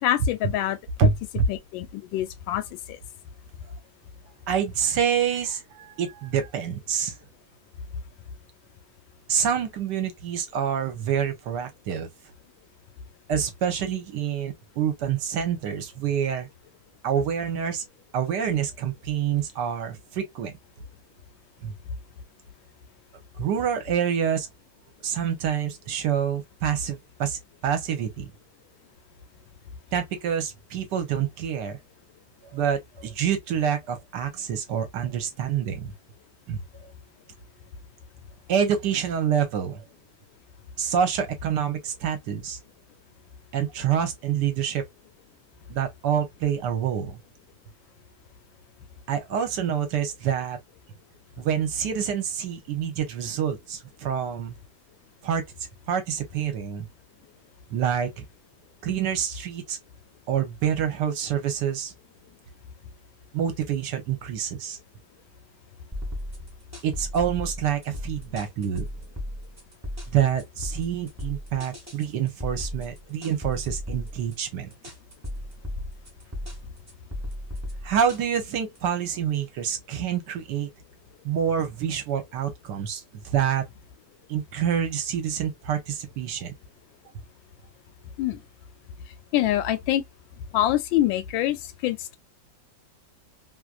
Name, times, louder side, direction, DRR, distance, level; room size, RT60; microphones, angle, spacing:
voice 1, 0.0-1.1 1.5-2.6 88.2-88.4 89.3-90.0 90.5-92.2, left 13 dB, 85° left, 1.3 m, -25 dB
voice 2, 1.0-1.5 4.5-7.2 9.3-12.1 13.3-16.5 17.0-17.8 18.1-20.6 21.6-21.8 23.4-24.5 25.0-28.3 29.9-31.8 32.5-35.9 36.5-36.9 38.5-39.8 40.8-42.6 43.5-44.8 45.7-47.2 49.1-50.6 51.4-54.6 55.2-55.5 55.9-56.9 57.7-58.2 58.8-59.8 60.3-61.9 63.3-64.8 66.8-68.9 70.1-74.7 77.8-80.7 81.2-83.6 84.3-86.5, right 8 dB, 70° right, 1.2 m, -27 dB
sound 1, 65.9-78.8, left 1 dB, 20° right, 0.4 m, -36 dB
3.1 x 2.5 x 2.2 m
omnidirectional pair, 2.0 m